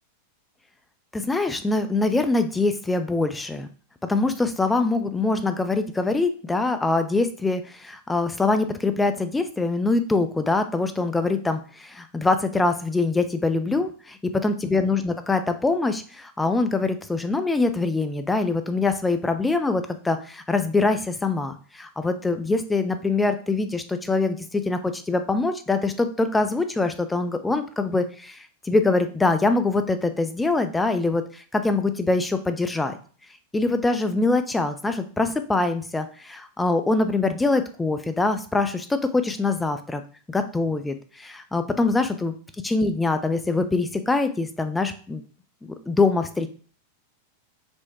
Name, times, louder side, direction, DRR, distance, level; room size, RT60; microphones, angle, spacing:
voice 1, 1.1-3.7 4.0-33.0 33.5-40.0 40.3-42.3 42.6-45.2 45.9-46.5, left 3 dB, 10° left, 9 dB, 0.4 m, -24 dB
4.4 x 2.2 x 4.2 m, 0.41 s
figure-of-eight pair, 90°, 0 cm